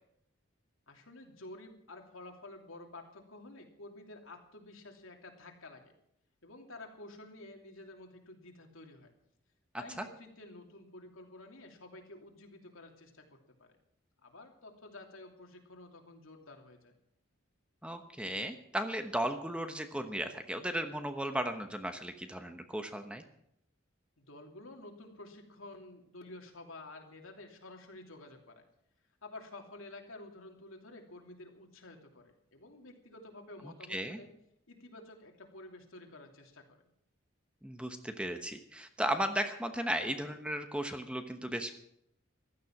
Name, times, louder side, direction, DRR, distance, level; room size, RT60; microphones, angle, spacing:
voice 1, 0.9-5.9 6.4-9.1 9.8-13.8 14.2-16.9 24.2-28.6 29.2-34.3 34.7-36.8, left 2 dB, 80° left, 2 dB, 3.0 m, -51 dB
voice 2, 17.8-23.2 33.9-34.2 37.6-41.8, right 1 dB, 5° right, 7 dB, 1.0 m, -35 dB
15.5 x 12.5 x 6.0 m, 0.73 s
head